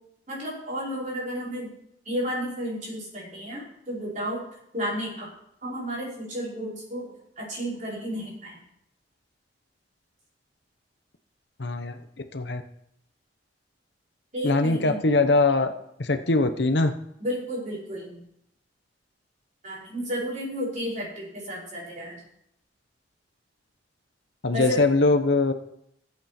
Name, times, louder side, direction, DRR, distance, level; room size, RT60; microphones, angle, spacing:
voice 1, 0.3-1.7 2.1-4.4 4.7-5.3 5.6-8.6 14.3-15.0 17.2-18.3 19.6-22.2 24.5-24.8, equal, 45° right, -6 dB, 5.4 m, -32 dB
voice 2, 11.6-12.0 12.3-12.6 14.4-15.7 16.0-16.9 24.4-25.5, left 3 dB, 70° left, 8 dB, 1.0 m, -22 dB
15.5 x 8.2 x 4.4 m, 0.74 s
head